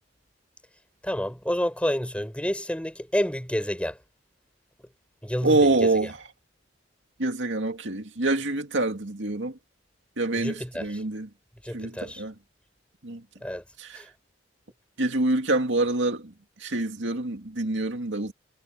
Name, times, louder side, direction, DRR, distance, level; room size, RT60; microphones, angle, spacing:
voice 1, 1.0-4.0 5.2-6.0 10.4-11.0 11.6-12.2 13.4-13.6 13.9-14.1, equal, 5° left, 5.6 m, -29 dB
voice 2, 5.4-6.2 7.2-9.6 10.2-11.3 11.7-12.3 13.0-13.2 13.8-14.0 15.0-16.3 16.6-18.3, right 2 dB, 75° right, 2.3 m, -26 dB
head